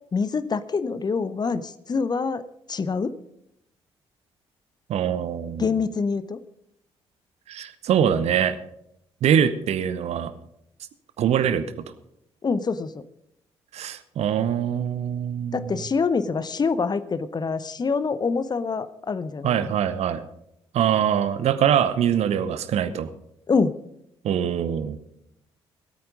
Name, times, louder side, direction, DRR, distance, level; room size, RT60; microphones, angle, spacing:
voice 1, 0.1-2.4 2.7-3.1 5.6-6.4 12.4-12.9 15.5-19.7 23.5-23.7, left 4 dB, 30° left, 14 dB, 0.8 m, -25 dB
voice 2, 4.9-5.8 7.5-8.6 9.2-10.3 11.2-11.7 13.7-15.8 19.4-20.2 20.7-23.1 24.2-25.0, right 9 dB, 50° right, 13 dB, 0.9 m, -23 dB
18.0 x 9.0 x 5.2 m, 0.78 s
figure-of-eight pair, 40°, 14 cm